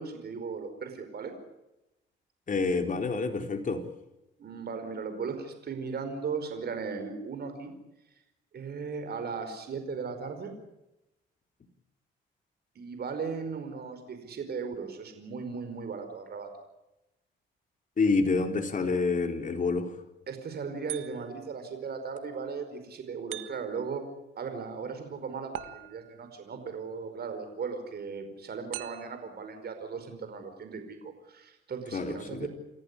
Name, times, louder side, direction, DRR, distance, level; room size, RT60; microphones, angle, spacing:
voice 1, 0.0-1.3 4.4-7.7 8.5-10.5 12.7-16.5 20.3-24.0 24.4-32.5, right 5 dB, 55° right, 7 dB, 5.0 m, -37 dB
voice 2, 2.5-3.8 18.0-19.9 31.9-32.5, left 4 dB, 40° left, 4 dB, 4.3 m, -28 dB
sound 1, 20.9-21.5 23.3-23.9 25.5-26.3 28.7-29.3, right 14 dB, 90° right, 1.5 m, -42 dB
29.0 x 14.5 x 9.9 m, 0.94 s
cardioid pair, 90°, 20 cm